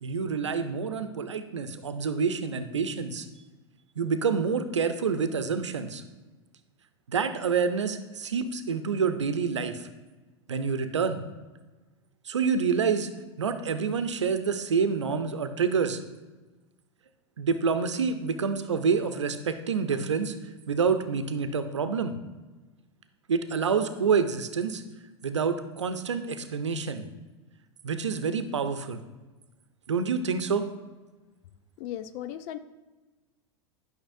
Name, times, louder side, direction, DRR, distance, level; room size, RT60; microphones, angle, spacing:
voice 1, 0.0-3.3 4.0-6.0 7.1-9.9 10.5-11.2 12.3-13.1 13.4-16.0 17.4-20.4 20.7-22.2 23.3-24.8 25.2-27.1 27.8-29.0 29.9-30.7, right 5 dB, 85° right, 9 dB, 0.7 m, -27 dB
voice 2, 31.8-32.6, left 11 dB, 50° left, 13 dB, 0.6 m, -36 dB
12.0 x 5.9 x 2.6 m, 1.2 s
hypercardioid pair, 90°, 15 cm